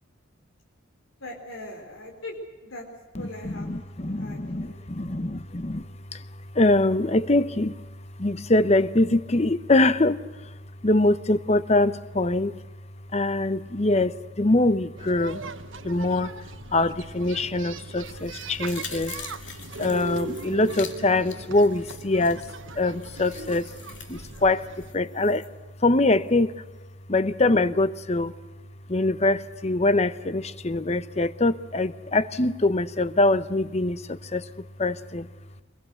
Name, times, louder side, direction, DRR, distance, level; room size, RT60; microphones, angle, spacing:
voice 1, 1.2-2.3 2.6-2.9 3.2-3.7 4.0-4.8, left 2 dB, 85° left, 1 dB, 4.3 m, -40 dB
voice 2, 3.4-5.8 6.6-7.8 8.2-10.2 10.8-12.5 13.1-15.4 15.8-16.3 16.7-19.1 19.8-22.4 22.8-23.6 24.1-24.6 24.9-25.4 25.8-26.5 27.1-28.3 28.9-34.4 34.8-35.3, left 2 dB, 35° left, 14 dB, 0.8 m, -23 dB
sound 1, 15.0-24.9, right 3 dB, 75° right, 1.3 m, -39 dB
sound 2, 18.0-25.5 25.9-26.0, left 7 dB, 65° left, 2.7 m, -45 dB
24.5 x 22.0 x 8.0 m, 1.2 s
head